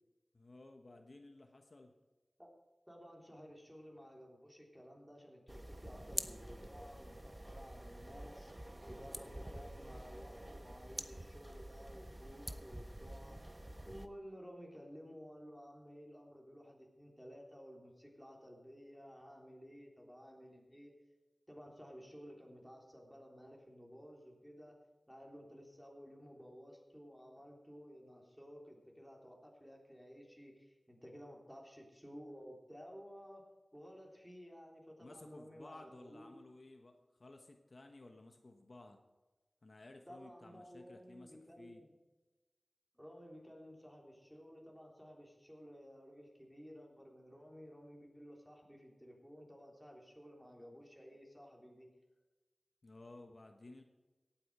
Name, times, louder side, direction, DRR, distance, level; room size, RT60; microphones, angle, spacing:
voice 1, 0.3-1.9 35.0-39.0 39.6-41.8 52.8-53.8, left 2 dB, 55° left, 4 dB, 1.2 m, -56 dB
voice 2, 2.9-13.4 13.8-20.9 21.5-24.8 25.1-36.3 40.1-41.9 42.9-51.9, equal, ahead, -1 dB, 3.5 m, -54 dB
sound 1, 5.5-14.1, right 1 dB, 25° right, 0.9 m, -47 dB
17.5 x 8.8 x 4.9 m, 1.2 s
wide cardioid pair, 75°, 0 cm